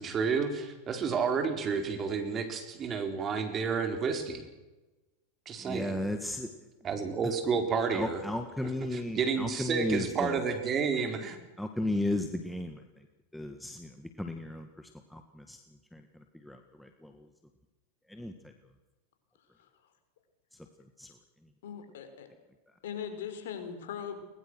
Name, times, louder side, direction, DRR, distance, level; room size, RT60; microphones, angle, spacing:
voice 1, 0.0-4.5 5.5-6.0 6.8-8.2 8.6-11.4, right 5 dB, 30° right, 6 dB, 4.3 m, -31 dB
voice 2, 5.7-6.5 7.9-10.3 11.6-12.8 13.3-13.9 14.2-14.7 15.1-15.2 15.5-15.6 15.9-16.0 16.5-16.6 17.0-17.1 18.1-18.3 21.0-21.1, left 1 dB, 5° left, 5 dB, 1.7 m, -33 dB
voice 3, 21.6-22.3 22.8-24.2, left 8 dB, 70° left, 7 dB, 4.4 m, -39 dB
21.0 x 21.0 x 6.4 m, 1.1 s
hypercardioid pair, 100°, 0 cm